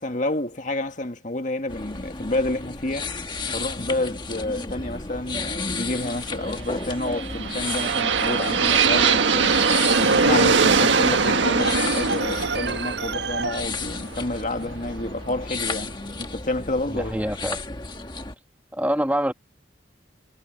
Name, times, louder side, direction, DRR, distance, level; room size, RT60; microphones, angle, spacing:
voice 1, 0.0-3.1 3.5-9.6 9.9-17.2, left 2 dB, 45° left, 1.8 m, -29 dB
sound 1, 1.7-18.3, left 3 dB, 25° left, 1.5 m, -33 dB
sound 2, 7.0-14.9, right 5 dB, 85° right, 1.6 m, -21 dB
Organ, 9.9-13.6, right 4 dB, 70° right, 7.3 m, -30 dB
voice 2, 16.9-17.6 18.7-19.3, equal, 10° right, 1.3 m, -25 dB
head